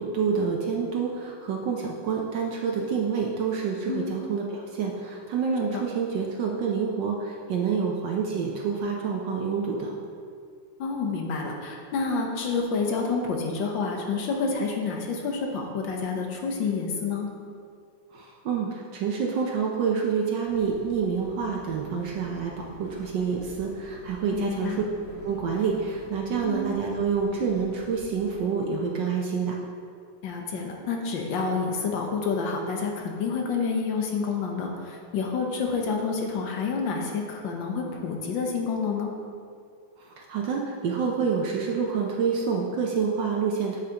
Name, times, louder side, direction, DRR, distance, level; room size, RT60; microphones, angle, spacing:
voice 1, 0.0-9.9 18.1-24.8 25.2-29.6 40.0-43.8, right 6 dB, 70° right, -1 dB, 1.2 m, -28 dB
voice 2, 10.8-17.3 24.3-24.8 26.4-26.7 30.2-39.1, left 4 dB, 65° left, 1 dB, 1.5 m, -28 dB
sound 1, 20.4-28.4, left 2 dB, 50° left, 1.4 m, -47 dB
8.1 x 8.1 x 2.9 m, 2.2 s
omnidirectional pair, 2.3 m